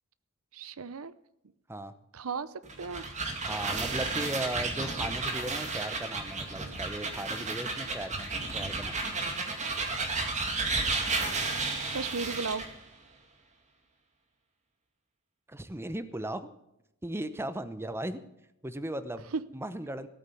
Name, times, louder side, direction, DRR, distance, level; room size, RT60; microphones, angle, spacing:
voice 1, 0.5-1.1 2.1-3.1 9.7-9.8 11.5-11.6 11.9-12.7 19.3-19.4, right 4 dB, 85° right, 16 dB, 0.7 m, -35 dB
sound 1, 2.6-12.7, right 3 dB, 35° right, 2.3 m, -32 dB
voice 2, 3.5-9.1 15.5-16.5 17.0-18.2 18.6-19.3 19.5-20.1, right 1 dB, 10° right, 11 dB, 0.8 m, -37 dB
16.5 x 9.0 x 6.9 m, 0.84 s
head